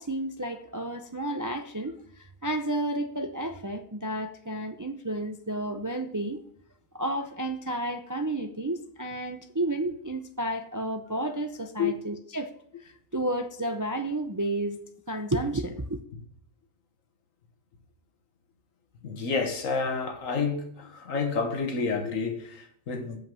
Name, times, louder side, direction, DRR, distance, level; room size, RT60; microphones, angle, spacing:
voice 1, 0.0-6.4 6.9-14.8 15.1-16.0, right 1 dB, 30° right, 0.3 m, -31 dB
voice 2, 19.0-23.2, left 5 dB, 85° left, 1.6 m, -29 dB
7.5 x 5.6 x 7.5 m
omnidirectional pair, 1.3 m